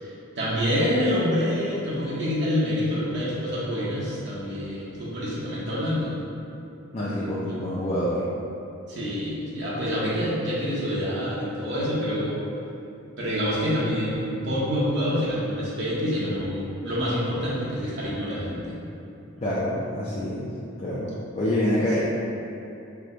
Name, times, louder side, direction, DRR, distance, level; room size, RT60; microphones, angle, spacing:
voice 1, 0.0-6.1 7.4-7.6 8.9-12.4 13.2-18.8, equal, 55° right, -8 dB, 1.1 m, -27 dB
voice 2, 6.9-8.3 19.4-20.5 20.8-22.0, left 1 dB, 30° left, -8 dB, 0.5 m, -26 dB
4.8 x 2.3 x 3.8 m, 2.9 s
head